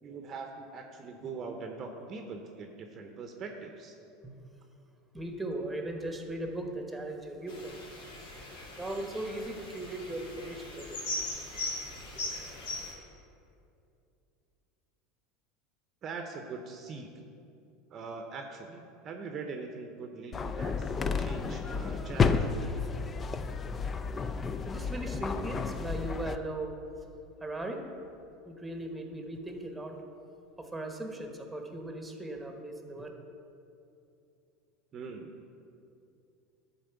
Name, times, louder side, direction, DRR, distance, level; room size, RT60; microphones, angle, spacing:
voice 1, 0.0-4.0 16.0-17.1 17.9-22.9 34.9-35.3, right 4 dB, 35° right, 4 dB, 0.7 m, -42 dB
voice 2, 5.1-7.8 8.8-11.0 12.1-12.2 23.7-23.8 24.7-26.7 27.4-27.8 28.4-30.0 30.6-33.1, right 1 dB, 5° right, 3 dB, 1.1 m, -38 dB
sound 1, 7.5-12.9, left 2 dB, 85° left, 2.6 m, -39 dB
sound 2, 20.3-26.4, left 5 dB, 25° left, 0.4 m, -31 dB
11.5 x 4.3 x 6.9 m, 2.6 s
supercardioid pair, 130°, 0 cm